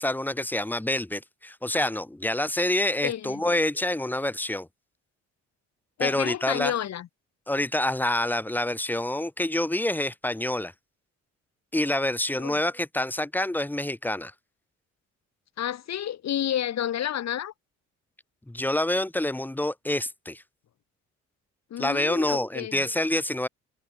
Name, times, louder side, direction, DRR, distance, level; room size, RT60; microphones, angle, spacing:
voice 1, 0.0-4.7 6.0-6.7 7.5-10.7 11.7-14.3 18.5-20.4 21.8-23.5, left 1 dB, 5° left, 1.5 m, -27 dB
voice 2, 3.0-3.6 6.0-7.1 12.4-12.6 15.6-17.5 21.7-22.8, left 10 dB, 60° left, 1.5 m, -30 dB
cardioid pair, 90°, 30 cm